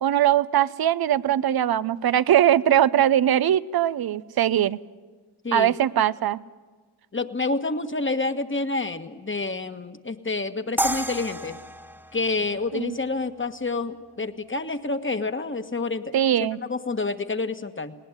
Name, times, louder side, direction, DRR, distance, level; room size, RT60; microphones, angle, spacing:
voice 1, 0.0-4.8 5.5-6.4 12.7-12.9 16.1-16.6, right 11 dB, 60° right, 18 dB, 0.7 m, -21 dB
voice 2, 5.4-5.7 7.1-11.6 12.1-16.2 16.6-18.0, left 3 dB, 25° left, 9 dB, 1.5 m, -28 dB
sound 1, 10.8-13.8, right 1 dB, 5° right, 1.5 m, -32 dB
19.5 x 18.5 x 9.8 m, 1.4 s
supercardioid pair, 40°, 43 cm